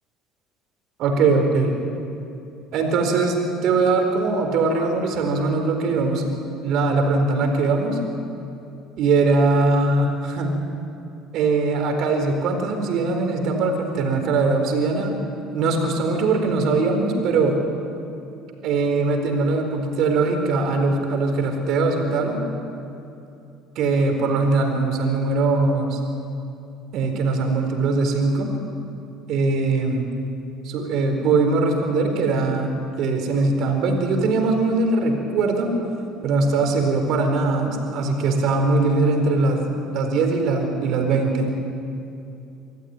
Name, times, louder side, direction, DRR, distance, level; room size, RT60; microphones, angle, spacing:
voice 1, 1.0-1.8 2.7-3.3 3.6-6.3 6.6-8.0 9.0-10.6 11.3-15.1 15.5-17.6 18.6-22.4 23.8-26.0 26.9-28.5 29.3-30.1 30.6-35.7 36.2-39.6 39.9-41.5, right 3 dB, 65° right, 4 dB, 4.4 m, -21 dB
24.5 x 14.5 x 9.7 m, 2.7 s
supercardioid pair, 100°, 0 cm